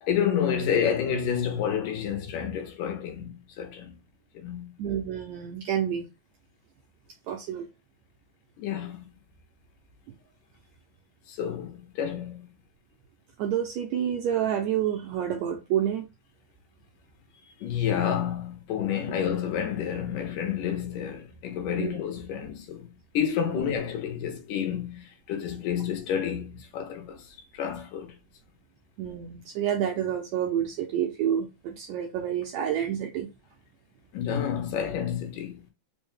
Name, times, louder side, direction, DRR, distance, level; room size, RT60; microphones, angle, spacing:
voice 1, 0.0-3.9 4.4-4.7 8.6-9.0 11.3-12.5 17.6-22.9 23.1-27.3 27.5-28.1 34.1-35.6, left 8 dB, 85° left, 2.4 m, -29 dB
voice 2, 4.8-6.1 7.3-7.7 13.4-16.0 21.8-22.0 29.0-33.3, right 9 dB, 80° right, 1.7 m, -28 dB
5.2 x 2.1 x 3.1 m
omnidirectional pair, 3.7 m